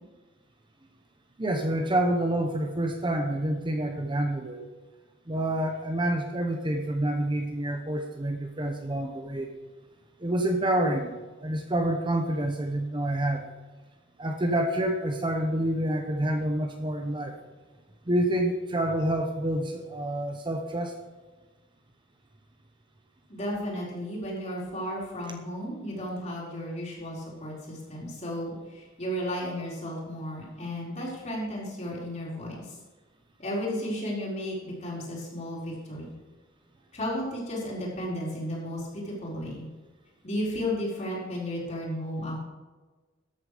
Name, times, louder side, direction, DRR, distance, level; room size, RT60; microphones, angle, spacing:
voice 1, 1.4-4.6 5.3-9.5 10.2-13.5 14.2-17.4 18.1-21.0, right 1 dB, 25° right, 4 dB, 0.9 m, -28 dB
voice 2, 23.3-32.6 33.4-36.1 36.9-39.7 40.2-42.4, equal, 35° left, -5 dB, 4.5 m, -34 dB
13.5 x 8.7 x 5.0 m, 1.3 s
head